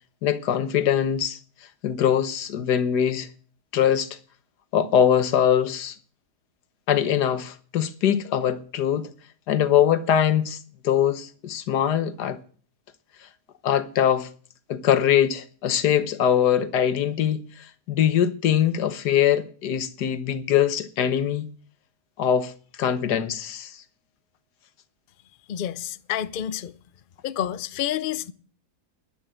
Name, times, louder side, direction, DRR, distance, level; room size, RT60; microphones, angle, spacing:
voice 1, 0.2-1.4 1.8-3.3 3.7-4.1 4.7-5.9 6.9-9.1 9.5-10.6 10.8-12.4 13.6-14.3 14.7-21.5 22.2-22.5 22.8-23.8, left 9 dB, 85° left, 1.5 m, -22 dB
voice 2, 25.5-26.7 27.2-28.3, left 11 dB, 60° left, 0.5 m, -29 dB
11.0 x 8.5 x 7.5 m
omnidirectional pair, 1.7 m